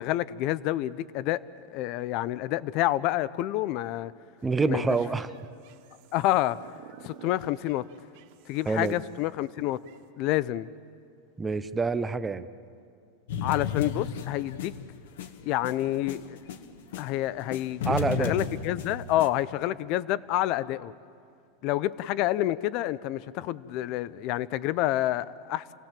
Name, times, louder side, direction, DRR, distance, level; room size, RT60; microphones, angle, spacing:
voice 1, 0.0-4.1 4.6-4.8 6.1-6.6 7.0-7.8 8.5-9.8 10.2-10.7 13.4-14.8 15.4-16.4 17.0-20.9 21.6-25.7, left 15 dB, 40° left, 18 dB, 0.6 m, -28 dB
voice 2, 4.4-5.3 8.7-9.0 11.4-12.5 17.9-18.3, right 4 dB, 10° right, 12 dB, 0.6 m, -27 dB
sound 1, 4.4-10.0, right 10 dB, 55° right, 1.2 m, -52 dB
sound 2, 13.3-17.1 17.4-19.3, left 6 dB, 80° left, 1.5 m, -34 dB
27.5 x 18.0 x 7.5 m, 2.4 s
supercardioid pair, 165°, 0 cm